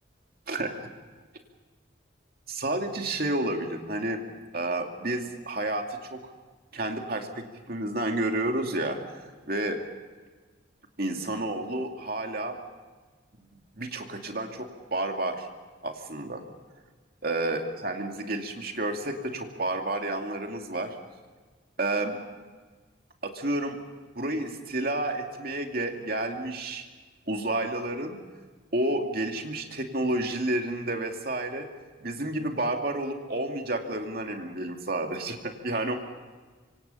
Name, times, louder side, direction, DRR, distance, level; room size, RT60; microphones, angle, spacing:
voice 1, 0.5-0.9 2.5-4.2 4.5-6.2 6.7-9.8 11.0-12.6 13.8-15.5 15.8-16.4 17.2-21.0 21.8-22.2 23.2-23.8 24.2-26.8 27.3-28.2 28.7-31.7 32.0-35.9, right 1 dB, 50° right, 3 dB, 2.6 m, -30 dB
25.5 x 25.0 x 5.7 m, 1.4 s
head